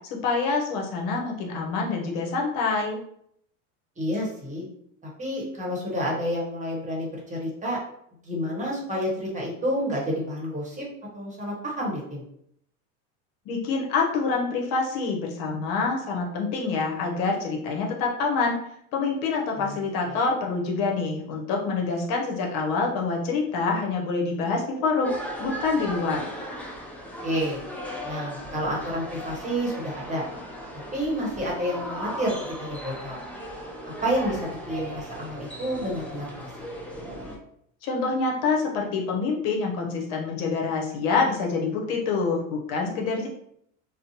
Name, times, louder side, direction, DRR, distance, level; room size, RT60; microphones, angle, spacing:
voice 1, 0.1-3.0 13.5-18.6 18.9-25.1 25.4-26.3 37.8-43.3, left 4 dB, 65° left, 0 dB, 0.8 m, -26 dB
voice 2, 4.0-4.6 5.2-7.8 8.2-10.8 11.1-12.2 19.6-19.8 20.1-20.2 27.2-27.6 28.0-30.2 30.9-33.2 33.8-36.5, equal, 20° right, -4 dB, 1.1 m, -29 dB
sound 1, 25.0-37.4, equal, 5° left, 0.4 m, -37 dB
2.5 x 2.0 x 2.8 m, 0.69 s
supercardioid pair, 100°, 37 cm